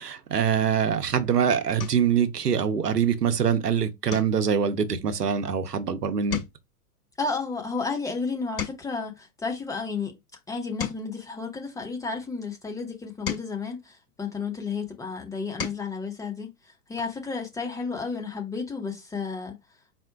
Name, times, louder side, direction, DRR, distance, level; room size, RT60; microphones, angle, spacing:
voice 1, 0.0-6.4, right 7 dB, 85° right, 0.9 m, -24 dB
sound 1, 0.9-1.2 1.8-2.2 2.7-3.0 3.3-3.5 4.1-5.9 6.2-9.1 9.7-12.2 12.8-14.7 15.2-16.0 17.3-17.4 17.7-17.9, left 7 dB, 30° left, 2.6 m, -39 dB
voice 2, 7.2-10.1 10.5-16.5 16.9-19.5, left 4 dB, 5° left, 0.8 m, -32 dB
4.3 x 2.1 x 4.6 m
figure-of-eight pair, 105°, 46 cm